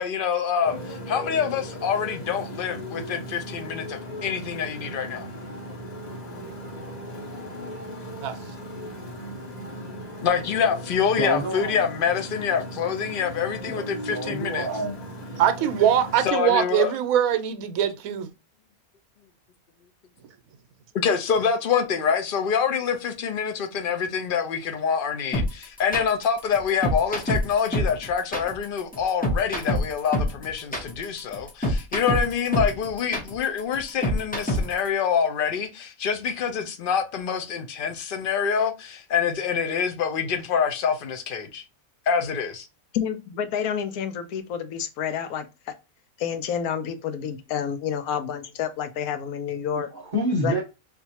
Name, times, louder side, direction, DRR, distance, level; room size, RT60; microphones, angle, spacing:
voice 1, 0.0-5.3 10.2-14.7 16.2-16.9 20.9-41.6 42.1-42.7, left 7 dB, 60° left, 0.5 m, -26 dB
Motorcycle, 0.6-16.3, equal, 35° left, 0.8 m, -37 dB
voice 2, 11.2-11.8 13.6-15.0 49.7-50.6, right 1 dB, 40° right, 0.9 m, -28 dB
voice 3, 15.4-18.3, right 10 dB, 80° right, 1.0 m, -22 dB
sound 1, 25.3-34.9, left 1 dB, 10° left, 0.4 m, -26 dB
voice 4, 42.9-45.7 46.2-49.9 50.4-50.6, left 8 dB, 85° left, 1.1 m, -29 dB
3.7 x 2.5 x 2.8 m
omnidirectional pair, 1.5 m